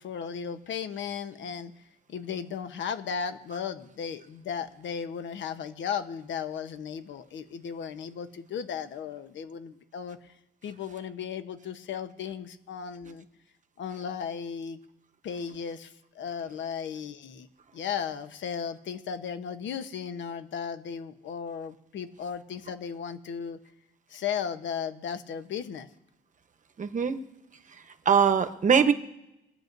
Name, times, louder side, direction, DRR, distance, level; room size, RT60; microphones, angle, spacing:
voice 1, 0.0-1.7 2.1-10.2 10.6-13.2 13.8-14.8 15.2-17.5 17.7-23.6 24.1-25.9, left 7 dB, 70° left, 10 dB, 1.0 m, -35 dB
voice 2, 26.8-27.2 28.1-28.9, right 7 dB, 40° right, 9 dB, 1.0 m, -21 dB
26.0 x 9.1 x 2.7 m, 0.92 s
cardioid pair, 90°, 20 cm